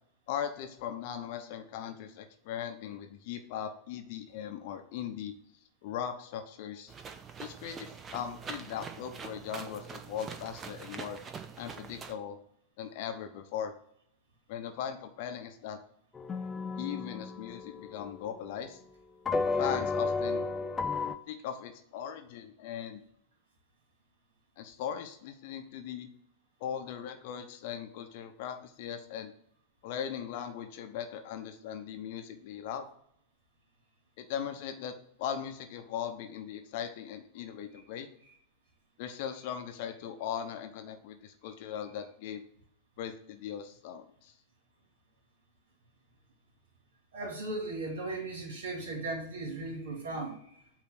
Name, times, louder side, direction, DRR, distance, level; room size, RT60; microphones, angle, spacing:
voice 1, 0.3-5.3 5.8-6.9 7.4-11.2 11.6-12.4 12.8-13.7 14.5-15.8 16.8-18.8 19.6-20.5 21.3-23.0 24.6-26.1 26.6-29.3 29.8-32.9 34.2-34.9 35.2-38.1 39.0-42.4 43.0-44.3, left 9 dB, 50° left, 6 dB, 0.9 m, -39 dB
sound 1, 6.9-12.1, right 6 dB, 25° right, 0.7 m, -44 dB
sound 2, 16.2-18.2 19.3-21.1, left 4 dB, 15° left, 0.5 m, -32 dB
voice 2, 47.1-50.6, right 2 dB, 60° right, 1 dB, 2.4 m, -37 dB
8.5 x 2.9 x 6.0 m, 0.68 s
figure-of-eight pair, 90°, 0 cm